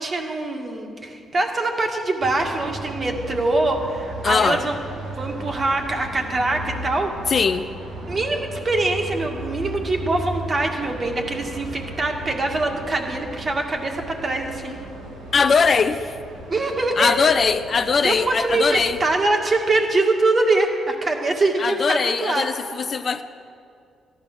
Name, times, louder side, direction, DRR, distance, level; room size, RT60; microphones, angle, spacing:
voice 1, 0.0-4.8 5.1-7.1 8.1-14.8 16.5-17.2 18.0-22.5, right 2 dB, 35° right, 3 dB, 1.8 m, -23 dB
sound 1, 2.2-19.1, right 1 dB, 90° right, 4.2 m, -36 dB
voice 2, 4.2-4.6 7.3-7.7 15.3-16.1 17.0-19.0 21.6-23.2, left 5 dB, 45° left, 10 dB, 0.5 m, -20 dB
13.5 x 11.0 x 6.6 m, 2.4 s
cardioid pair, 90°, 0 cm